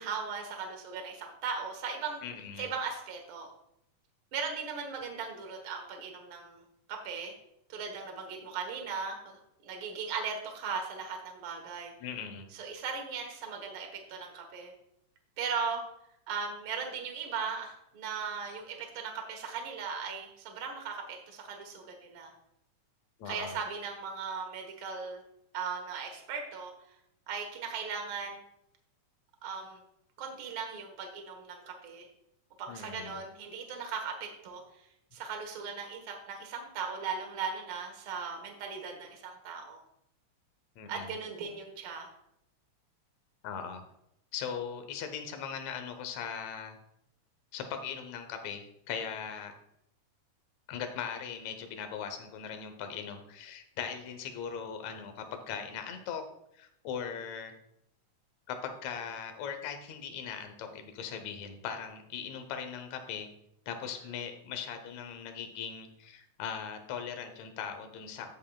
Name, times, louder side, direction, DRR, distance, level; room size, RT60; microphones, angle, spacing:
voice 1, 0.0-2.2 2.6-3.5 4.3-6.6 6.9-7.3 7.7-11.9 12.5-14.7 15.4-15.9 16.3-22.3 23.3-25.2 25.5-26.7 27.3-28.4 29.4-29.8 30.2-32.1 32.6-34.6 35.1-39.8 40.9-42.1, right 5 dB, 50° right, 3 dB, 1.8 m, -38 dB
voice 2, 2.2-2.7 12.0-12.5 23.2-23.6 32.7-33.2 40.8-41.1 43.4-43.8 44.3-46.8 47.5-49.5 50.7-56.2 56.5-57.5 58.5-63.3 63.7-68.3, left 7 dB, 70° left, 7 dB, 2.0 m, -39 dB
16.0 x 5.5 x 2.3 m, 0.78 s
omnidirectional pair, 3.8 m